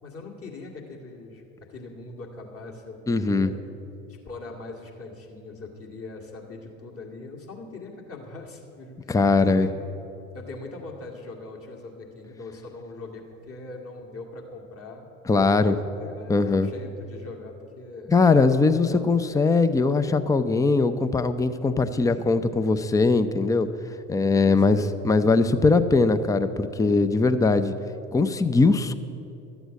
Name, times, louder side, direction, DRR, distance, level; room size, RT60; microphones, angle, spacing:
voice 1, 0.0-3.6 4.1-9.7 10.3-15.1 15.4-18.1 18.9-19.3 22.0-22.4 24.4-25.0, left 3 dB, 35° left, 0 dB, 2.3 m, -41 dB
voice 2, 3.1-3.5 9.1-9.7 15.3-15.7 16.3-16.7 18.1-23.7 24.1-24.8 25.0-27.7 28.1-28.9, left 3 dB, 10° left, 11 dB, 0.5 m, -20 dB
12.5 x 8.0 x 8.2 m, 2.9 s
hypercardioid pair, 65°, 39 cm